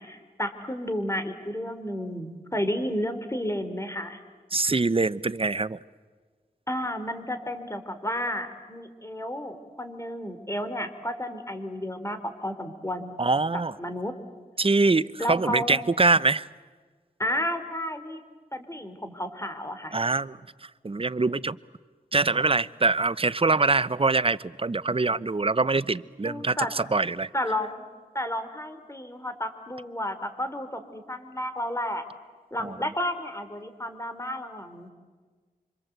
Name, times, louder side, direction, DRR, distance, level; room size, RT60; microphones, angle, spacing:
voice 1, 0.0-4.2 6.7-13.1 13.8-14.1 15.2-15.8 17.2-18.2 18.5-20.0 26.2-26.7 27.3-27.9 28.1-32.0 32.5-34.9, left 1 dB, 20° left, 9 dB, 3.6 m, -32 dB
voice 2, 4.5-5.8 13.2-13.7 14.6-16.5 19.9-20.4 20.8-21.6 22.1-27.3 32.6-32.7, right 3 dB, 40° right, 16 dB, 0.8 m, -24 dB
27.0 x 25.5 x 8.1 m, 1.4 s
cardioid pair, 40°, 15 cm